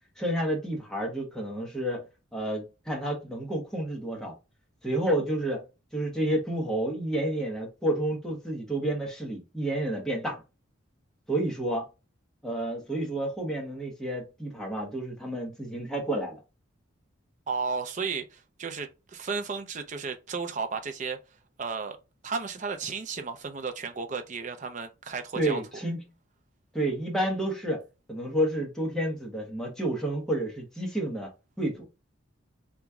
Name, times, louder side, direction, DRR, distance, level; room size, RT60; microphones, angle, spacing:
voice 1, 0.2-2.1 2.3-4.3 4.8-5.6 5.9-10.4 11.3-11.9 12.4-16.4 25.3-26.0 26.7-27.8 28.1-31.3 31.6-31.9, right 1 dB, ahead, 1.0 m, -30 dB
voice 2, 17.5-21.2 21.6-22.0 22.2-25.6, right 5 dB, 35° right, 0.4 m, -33 dB
3.0 x 2.3 x 3.5 m
head